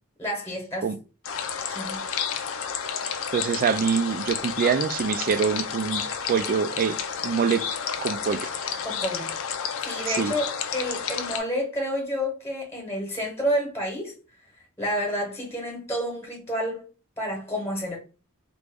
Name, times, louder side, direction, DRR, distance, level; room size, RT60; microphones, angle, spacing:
voice 1, 0.2-0.9 1.7-2.0 8.8-9.3 9.8-14.1 14.8-16.8 17.2-18.0, equal, 10° left, 1.1 m, -29 dB
sound 1, 1.2-11.4, left 7 dB, 70° left, 0.5 m, -31 dB
voice 2, 3.3-7.0 7.2-7.6 8.0-8.5 10.1-10.3, right 6 dB, 40° right, 0.3 m, -25 dB
3.0 x 2.5 x 3.4 m
head